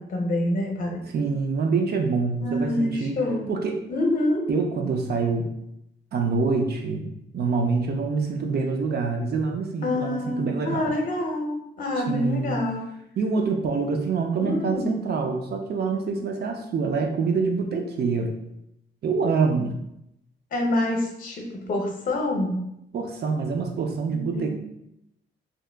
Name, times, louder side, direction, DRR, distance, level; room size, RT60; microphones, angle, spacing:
voice 1, 0.0-1.0 2.4-3.4 3.9-4.4 9.8-12.8 14.3-14.9 15.9-16.0 20.5-22.6 24.1-24.5, left 1 dB, 45° left, 1 dB, 0.7 m, -26 dB
voice 2, 1.1-3.1 3.5-3.8 4.5-5.5 6.1-10.9 12.1-12.6 13.2-18.3 19.0-19.8 22.9-24.5, right 4 dB, 55° right, 3 dB, 0.4 m, -26 dB
2.8 x 2.2 x 3.3 m, 0.81 s
wide cardioid pair, 135°, 20 cm